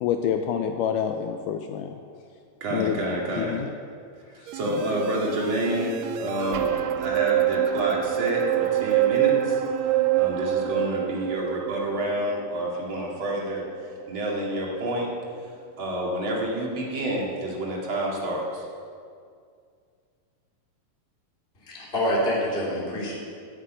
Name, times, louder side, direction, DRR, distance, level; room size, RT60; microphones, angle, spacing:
voice 1, 0.0-2.0 2.7-3.0 3.4-3.7, left 8 dB, 80° left, 5 dB, 2.0 m, -27 dB
voice 2, 2.6-3.6 4.3-13.7 14.1-15.1 15.8-18.6, right 1 dB, 40° right, -3 dB, 2.6 m, -29 dB
sound 1, 4.5-14.8 15.2-15.3, right 12 dB, 80° right, 2.1 m, -26 dB
voice 3, 21.7-23.1, equal, 15° left, -5 dB, 2.7 m, -26 dB
9.7 x 8.4 x 8.9 m, 2.2 s
omnidirectional pair, 4.0 m